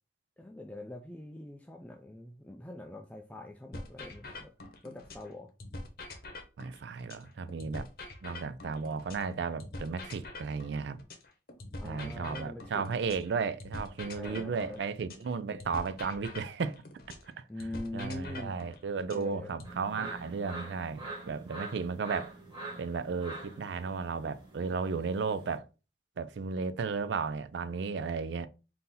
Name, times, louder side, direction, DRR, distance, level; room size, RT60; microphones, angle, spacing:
voice 1, 0.4-4.5 4.8-5.5 11.8-12.8 14.2-14.8 17.5-18.5 19.1-19.5 20.0-20.1, left 1 dB, 10° left, 0.3 m, -43 dB
sound 1, 3.7-5.3 5.6-9.3 9.6-13.3 13.6-17.3 17.6-19.7, left 2 dB, 50° left, 0.8 m, -44 dB
voice 2, 6.6-7.9 8.2-11.0 11.8-16.8 17.4-17.5 17.9-22.3 22.8-25.7 26.2-28.5, right 5 dB, 75° right, 0.4 m, -34 dB
sound 2, 19.6-25.5, right 2 dB, 25° right, 1.3 m, -45 dB
4.0 x 2.8 x 3.7 m
head